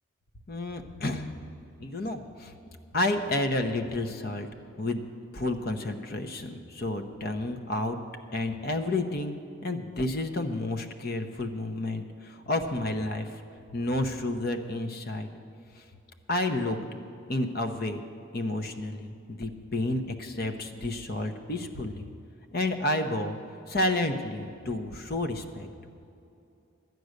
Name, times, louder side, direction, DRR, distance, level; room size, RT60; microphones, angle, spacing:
voice 1, 0.5-1.3 1.8-2.5 2.9-4.5 4.8-5.0 5.3-8.0 8.3-9.3 9.6-13.3 13.7-15.3 15.8-15.9 16.3-16.9 17.3-18.0 18.3-22.1 22.5-23.4 23.7-25.7, left 2 dB, 45° left, 6 dB, 0.8 m, -30 dB
12.0 x 9.4 x 6.5 m, 2.7 s
head